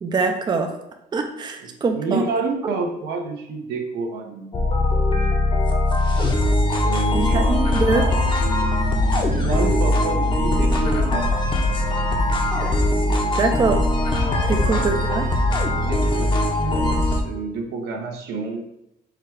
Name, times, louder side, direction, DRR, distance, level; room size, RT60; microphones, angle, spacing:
voice 1, 0.0-0.7 1.1-2.3 7.1-8.1 13.4-13.8 14.5-15.3, right 4 dB, 25° right, 4 dB, 0.5 m, -23 dB
voice 2, 1.6-4.7 6.8-8.3 9.3-11.4 14.6-15.1 15.8-18.6, right 4 dB, 80° right, 2 dB, 0.9 m, -29 dB
sound 1, 4.5-17.2, left 1 dB, 30° left, 0.8 m, -20 dB
Bass guitar, 8.4-14.7, right 1 dB, 55° left, 1.0 m, -36 dB
4.8 x 2.3 x 4.6 m, 0.85 s
cardioid pair, 110°, 17 cm